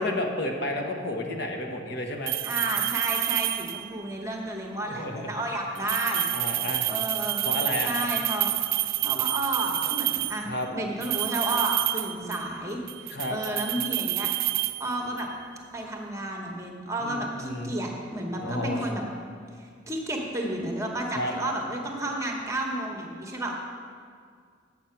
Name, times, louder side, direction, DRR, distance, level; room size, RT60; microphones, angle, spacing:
voice 1, 0.0-2.4 4.8-5.3 6.3-6.9 7.4-8.0 10.5-10.7 13.1-13.4 17.0-17.7 18.4-18.9 21.1-21.3, left 1 dB, 65° left, 2 dB, 1.1 m, -31 dB
sound 1, 2.3-4.0 5.8-10.5 11.0-12.6 12.9-15.3, right 17 dB, 55° right, 0.4 m, -29 dB
voice 2, 2.4-6.2 6.5-6.6 6.9-7.5 7.8-8.5 8.8-14.3 14.8-15.3 15.7-19.0 19.6-23.5, right 1 dB, 15° right, 1 dB, 1.1 m, -31 dB
7.9 x 7.5 x 5.8 m, 2.1 s
head